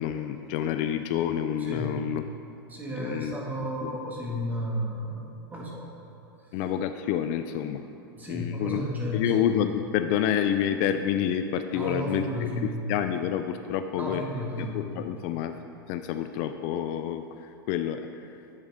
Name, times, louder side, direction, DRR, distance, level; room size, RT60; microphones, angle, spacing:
voice 1, 0.0-2.3 3.0-3.4 3.8-4.0 6.5-7.8 8.3-8.8 9.1-14.2 14.6-15.5 15.9-18.4, left 9 dB, 50° left, 8 dB, 0.4 m, -28 dB
voice 2, 1.6-2.0 2.7-5.9 7.9-9.3 11.7-12.8 14.0-14.8, equal, 15° right, -3 dB, 1.9 m, -33 dB
10.5 x 7.5 x 3.6 m, 2.6 s
hypercardioid pair, 115°, 12 cm